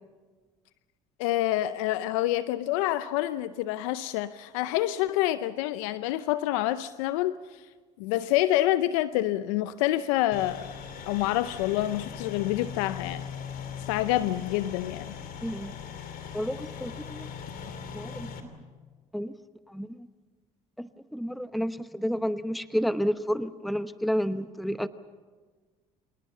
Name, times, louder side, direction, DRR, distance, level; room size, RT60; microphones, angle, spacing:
voice 1, 1.2-7.3 8.0-10.7 11.1-13.2 13.9-15.1, left 14 dB, 85° left, 14 dB, 0.6 m, -27 dB
sound 1, 10.3-18.4, left 7 dB, 60° left, 2.8 m, -40 dB
voice 2, 15.4-15.7 16.3-17.3 17.9-18.3 19.1-19.3 19.7-20.1 20.8-24.9, equal, ahead, 12 dB, 0.9 m, -30 dB
26.5 x 19.0 x 7.1 m, 1.4 s
supercardioid pair, 70°, 17 cm